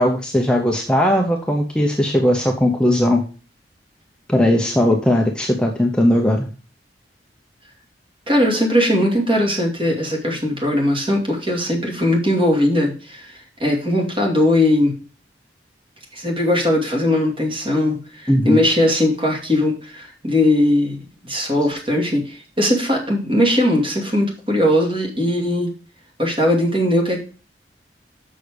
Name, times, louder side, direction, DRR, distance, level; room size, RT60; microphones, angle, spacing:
voice 1, 0.0-3.2 4.3-6.5 18.3-18.6, left 1 dB, 5° left, 2 dB, 0.8 m, -18 dB
voice 2, 8.3-14.9 16.1-21.0 21.2-25.7 26.2-27.2, left 1 dB, 30° right, 0 dB, 2.5 m, -19 dB
6.4 x 6.4 x 5.1 m, 0.36 s
head